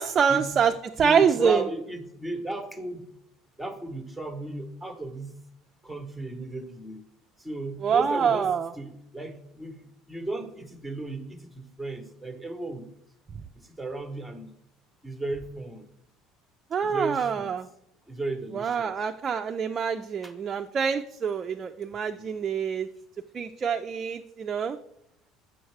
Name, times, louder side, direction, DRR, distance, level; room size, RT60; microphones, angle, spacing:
voice 1, 0.0-1.7 7.8-8.7 16.7-17.7 18.5-22.9 23.3-24.8, right 7 dB, 30° right, 5 dB, 0.3 m, -25 dB
voice 2, 1.0-3.1 3.6-5.3 5.8-7.0 7.4-9.8 10.1-12.9 13.6-14.5 15.0-15.9 16.8-17.5 18.1-19.0 20.2-20.3 22.1-22.5, right 1 dB, ahead, 5 dB, 0.8 m, -35 dB
7.7 x 6.3 x 3.3 m, 0.75 s
cardioid pair, 140°, 0 cm